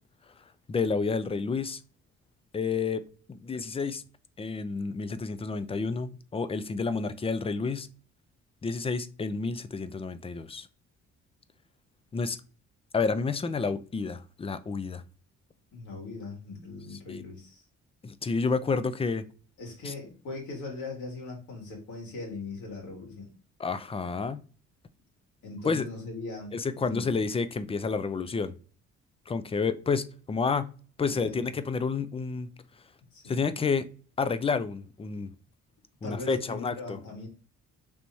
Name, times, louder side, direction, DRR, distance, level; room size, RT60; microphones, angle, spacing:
voice 1, 0.7-1.8 2.5-3.0 3.3-4.0 4.4-7.9 8.6-10.7 12.1-12.4 12.9-15.0 17.1-17.2 18.0-19.2 19.8-19.9 23.6-24.4 25.6-25.9 26.5-28.5 29.3-30.7 31.0-32.5 33.2-33.9 34.2-35.3 36.0-37.0, left 4 dB, 20° left, 0.4 m, -30 dB
voice 2, 15.7-17.6 19.6-23.3 25.4-27.2 31.0-31.4 33.1-33.4 36.0-37.3, left 3 dB, 75° left, 2.0 m, -40 dB
3.5 x 3.0 x 4.0 m
cardioid pair, 90°, 30 cm